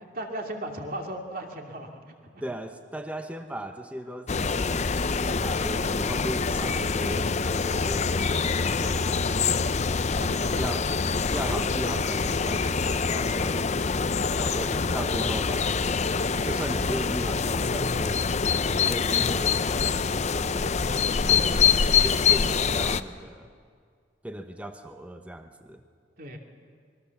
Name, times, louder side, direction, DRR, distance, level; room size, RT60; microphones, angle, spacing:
voice 1, 0.1-2.0 2.3-2.4 8.8-10.8 26.2-26.4, right 1 dB, 50° right, 2 dB, 2.7 m, -38 dB
voice 2, 2.4-9.6 10.5-10.9 11.3-13.7 14.3-15.8 16.4-18.2 18.7-20.8 21.3-23.5 24.2-25.8, equal, 5° right, 6 dB, 0.9 m, -37 dB
sound 1, 4.3-23.0, left 5 dB, 35° left, 0.6 m, -25 dB
26.0 x 21.5 x 7.2 m, 2.1 s
head